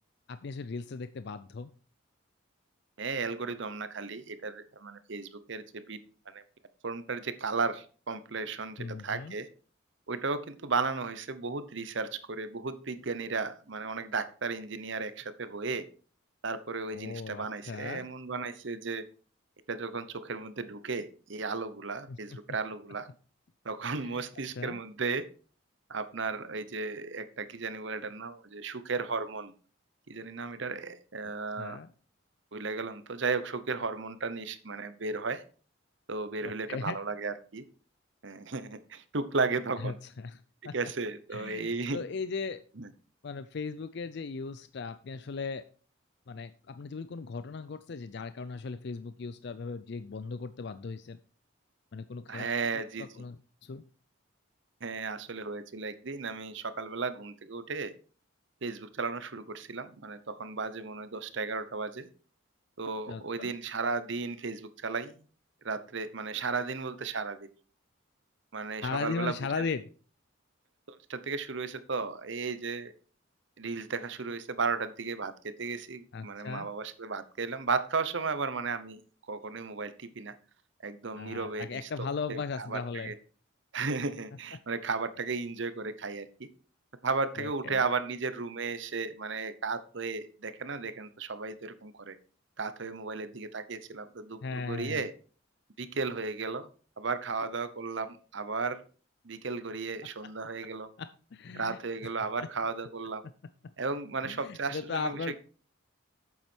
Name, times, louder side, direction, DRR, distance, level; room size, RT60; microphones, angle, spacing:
voice 1, 0.3-1.7 8.8-9.4 16.9-18.1 22.1-22.4 24.0-24.2 24.6-24.8 31.6-31.9 36.4-37.0 39.8-40.7 41.3-42.6 43.2-45.6 46.3-51.2 51.9-52.5 53.0-53.8 63.1-63.5 68.8-69.9 76.1-76.7 81.2-83.1 84.5-84.6 87.4-87.8 94.4-95.1 100.2-100.3 101.0-101.8 102.4-102.5 104.2-105.4, left 4 dB, 55° left, 13 dB, 0.4 m, -37 dB
voice 2, 3.0-6.0 6.3-6.4 6.8-9.5 10.1-15.9 16.4-19.0 19.7-23.1 23.6-25.2 25.9-29.5 30.1-31.8 32.5-35.4 36.1-37.6 38.2-40.0 40.6-42.0 42.8-42.9 52.3-53.1 54.8-57.9 58.6-62.1 62.8-65.2 65.6-67.5 68.5-69.3 70.9-72.9 73.6-79.0 79.3-80.3 80.8-83.1 83.7-86.3 87.0-92.2 92.6-95.1 95.8-96.7 97.0-98.8 99.2-100.9 101.5-103.2 103.8-105.2, right 4 dB, 60° right, 12 dB, 0.8 m, -34 dB
8.3 x 7.4 x 4.4 m, 0.40 s
head